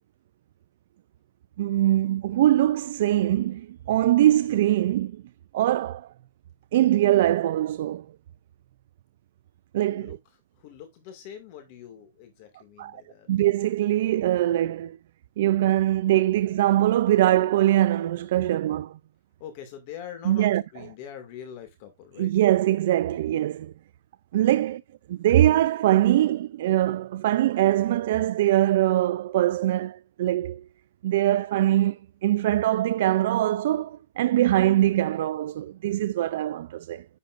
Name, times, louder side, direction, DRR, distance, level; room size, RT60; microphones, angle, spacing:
voice 1, 1.6-5.2 5.5-6.1 6.7-8.1 9.7-10.2 12.8-13.0 13.3-15.0 15.4-19.0 20.2-20.6 22.2-23.7 24.3-24.8 25.1-30.6 31.0-37.0, right 13 dB, 65° right, 0.4 m, -22 dB
voice 2, 10.6-13.3 19.4-22.3 24.5-24.6, left 9 dB, 45° left, 2.2 m, -43 dB
10.5 x 7.3 x 2.5 m
supercardioid pair, 155°, 0 cm